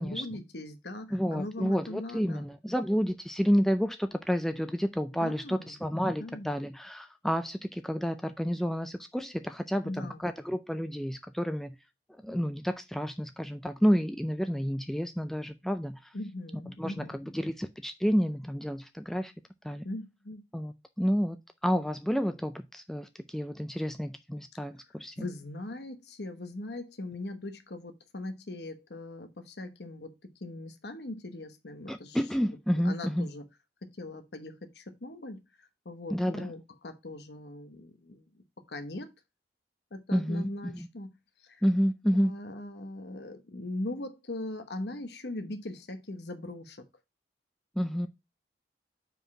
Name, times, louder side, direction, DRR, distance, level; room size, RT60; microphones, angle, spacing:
voice 1, 0.0-2.4 5.1-5.7 6.2-6.5 9.8-10.3 16.1-17.3 19.8-20.4 25.2-30.1 30.4-32.2 32.8-33.4 33.8-39.1 39.9-41.1 41.4-41.6 42.1-46.9, left 2 dB, 70° left, 1.1 m, -40 dB
voice 2, 1.1-11.8 12.2-16.1 16.8-19.3 19.6-19.8 20.5-21.4 21.6-25.3 31.9-33.3 36.1-36.5 40.1-40.9 41.6-42.3 47.8-48.1, equal, ahead, 0.4 m, -30 dB
5.2 x 4.8 x 5.9 m
head